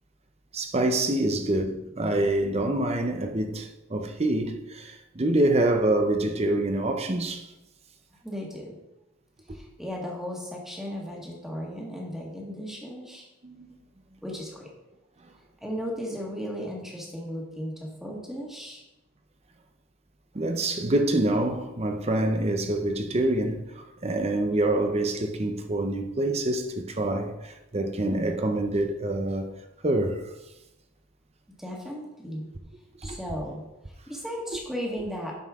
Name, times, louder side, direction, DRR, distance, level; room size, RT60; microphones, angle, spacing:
voice 1, 0.5-7.5 9.5-9.6 13.4-13.8 20.3-29.5 29.8-30.2 33.0-33.2 34.5-34.6, right 1 dB, 30° right, 0.6 m, -26 dB
voice 2, 8.2-8.7 9.5-13.2 14.2-14.7 15.6-18.8 31.6-32.4 33.0-33.6 34.1-35.4, equal, ahead, 1.5 m, -35 dB
9.3 x 6.6 x 3.6 m
head